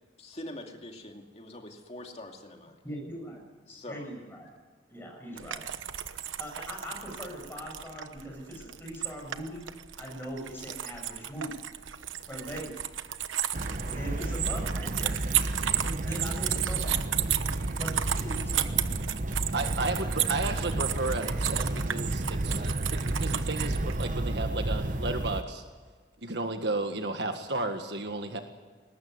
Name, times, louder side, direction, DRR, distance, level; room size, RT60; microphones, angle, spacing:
voice 1, 0.2-2.8 3.7-4.1, left 1 dB, 35° left, 3 dB, 2.6 m, -43 dB
voice 2, 2.8-4.5 4.9-5.6 6.4-9.7 10.0-11.7 12.3-12.8 13.8-15.0 16.0-17.2 17.8-18.8, equal, 10° left, -1 dB, 7.7 m, -40 dB
sound 1, 5.4-24.1, right 11 dB, 90° right, 1.1 m, -34 dB
sound 2, 13.5-25.4, right 2 dB, 40° right, 0.9 m, -32 dB
voice 3, 19.5-25.6 26.2-28.4, right 2 dB, 60° right, 6 dB, 1.7 m, -33 dB
21.5 x 19.5 x 9.6 m, 1.5 s
head